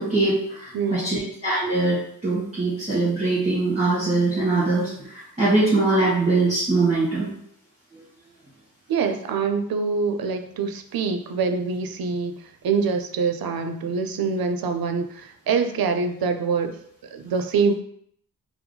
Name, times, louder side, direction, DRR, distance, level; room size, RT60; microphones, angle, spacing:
voice 1, 0.0-7.3, right 2 dB, 20° right, -11 dB, 1.5 m, -22 dB
voice 2, 0.7-1.3 8.9-16.8 17.0-17.7, right 5 dB, 85° right, 7 dB, 0.5 m, -25 dB
4.5 x 2.0 x 3.9 m, 0.68 s
wide cardioid pair, 145°, 35 cm